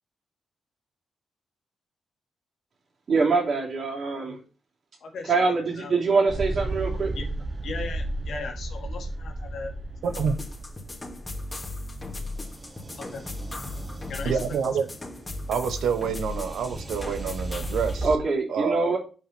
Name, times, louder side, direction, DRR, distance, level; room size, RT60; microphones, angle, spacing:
voice 1, 3.1-4.4 5.3-7.2 18.0-19.0, right 4 dB, 55° right, -3 dB, 3.0 m, -24 dB
voice 2, 5.0-6.0 7.1-7.2 7.6-9.7 13.0-13.2 14.1-14.4, left 4 dB, 75° left, 2 dB, 1.7 m, -38 dB
sound 1, 6.3-18.2, right 2 dB, 30° right, 1.0 m, -35 dB
sound 2, 10.0-18.1, left 2 dB, 20° left, 2.2 m, -37 dB
voice 3, 10.0-10.4 14.2-14.9 15.5-18.1 18.5-18.9, right 6 dB, 85° right, 9 dB, 0.8 m, -27 dB
5.4 x 5.2 x 5.7 m, 0.36 s
cardioid pair, 75°, 0 cm